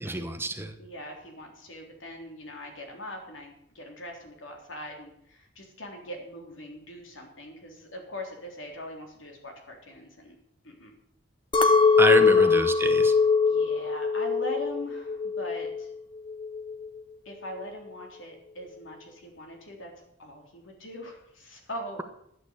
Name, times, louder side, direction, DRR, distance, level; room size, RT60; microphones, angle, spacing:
voice 1, 0.0-0.7 12.0-13.1, right 1 dB, 10° right, 8 dB, 0.9 m, -27 dB
voice 2, 0.8-10.4 10.6-10.9 11.8-12.5 12.9-13.1 13.5-15.9 17.3-19.9 20.2-22.0, equal, 85° left, 2 dB, 3.6 m, -41 dB
Chink clink, 11.5-15.9 16.3-16.9, left 4 dB, 25° left, 0.9 m, -22 dB
12.0 x 8.6 x 8.2 m, 0.73 s
head